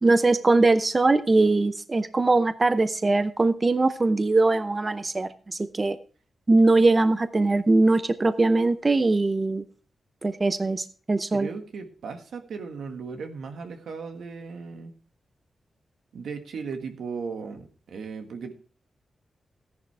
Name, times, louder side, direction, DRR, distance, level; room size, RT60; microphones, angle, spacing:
voice 1, 0.0-6.0 6.5-9.6 10.2-11.5, right 2 dB, 30° right, 11 dB, 0.7 m, -21 dB
voice 2, 11.3-14.9 16.1-18.5, right 5 dB, 85° right, 5 dB, 1.7 m, -36 dB
14.0 x 10.5 x 3.4 m, 0.40 s
cardioid pair, 85°, 0 cm